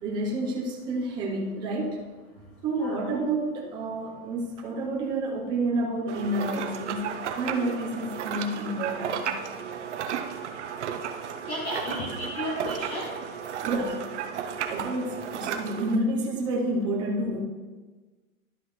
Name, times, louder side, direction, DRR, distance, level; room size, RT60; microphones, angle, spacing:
voice 1, 0.0-2.1 2.6-9.4 13.6-14.2 14.6-17.4, right 1 dB, 10° right, -2 dB, 0.7 m, -29 dB
sound 1, 6.1-16.0, right 8 dB, 50° right, 0.7 m, -34 dB
voice 2, 11.5-13.1, left 1 dB, 30° left, -2 dB, 1.0 m, -33 dB
11.5 x 6.0 x 3.1 m, 1.3 s
hypercardioid pair, 160°, 44 cm